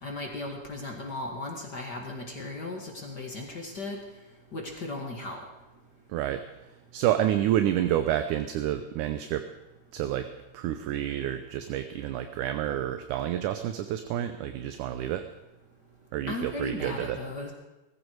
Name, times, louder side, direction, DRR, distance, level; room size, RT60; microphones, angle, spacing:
voice 1, 0.0-4.0 4.5-5.4 16.3-17.5, left 2 dB, 35° left, 1 dB, 2.1 m, -36 dB
voice 2, 6.1-6.4 6.9-9.5 9.9-10.3 10.5-15.3 16.1-17.2, right 11 dB, 75° right, 9 dB, 2.2 m, -29 dB
20.5 x 14.5 x 4.7 m, 1.0 s
omnidirectional pair, 3.8 m